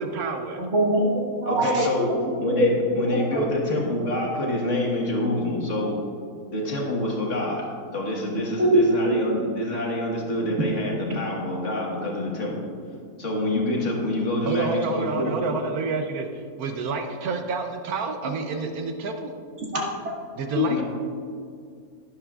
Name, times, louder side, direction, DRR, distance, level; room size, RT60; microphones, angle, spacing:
voice 1, 0.0-0.6 14.5-19.3 20.3-20.8, right 4 dB, 75° right, 5 dB, 1.2 m, -29 dB
voice 2, 0.6-2.8 3.1-3.8 8.6-9.2 18.2-18.3 19.7-20.1 20.5-20.8, equal, 50° right, -2 dB, 1.7 m, -23 dB
voice 3, 1.4-2.1 2.4-6.0 6.5-7.7 7.9-12.5 13.2-15.3 20.6-20.8, left 1 dB, 55° left, -2 dB, 1.7 m, -27 dB
12.0 x 10.0 x 2.4 m, 2.2 s
omnidirectional pair, 1.6 m